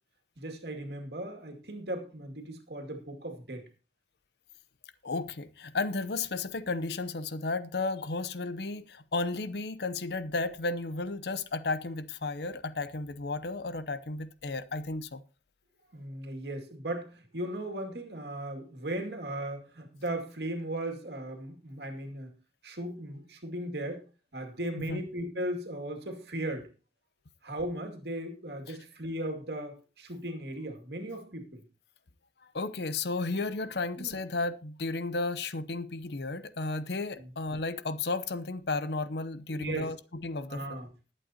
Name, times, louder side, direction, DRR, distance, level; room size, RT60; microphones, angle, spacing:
voice 1, 0.4-3.7 15.9-22.3 22.6-24.0 24.3-26.7 27.4-31.6 33.3-33.5 34.0-34.2 37.2-37.3 39.5-39.9 40.5-40.9, right 1 dB, 65° right, 2.3 m, -37 dB
voice 2, 5.0-15.2 24.8-25.0 28.7-28.8 32.5-40.9, left 3 dB, 65° left, 0.7 m, -33 dB
20.0 x 8.4 x 2.9 m
head